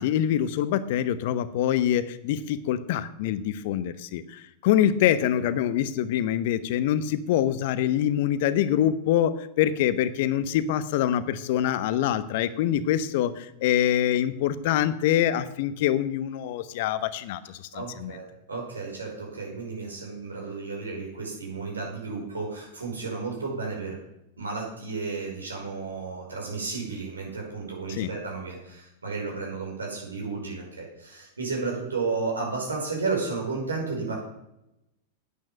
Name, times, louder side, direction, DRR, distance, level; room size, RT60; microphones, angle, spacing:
voice 1, 0.0-18.2 27.9-28.1, left 11 dB, 60° left, 15 dB, 0.9 m, -25 dB
voice 2, 17.7-24.0 24.4-34.1, right 4 dB, 90° right, -1 dB, 5.4 m, -33 dB
9.7 x 8.6 x 7.8 m, 0.86 s
hypercardioid pair, 95°, 0 cm